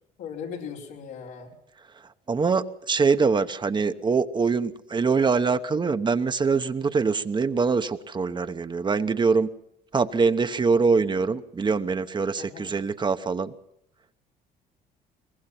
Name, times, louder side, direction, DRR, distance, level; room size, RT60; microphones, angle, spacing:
voice 1, 0.2-1.5 12.4-12.8, left 7 dB, 90° left, -2 dB, 4.9 m, -38 dB
voice 2, 2.3-9.5 9.9-13.5, right 4 dB, 25° right, 10 dB, 1.0 m, -24 dB
22.5 x 19.5 x 5.8 m, 0.78 s
cardioid pair, 110°, 17 cm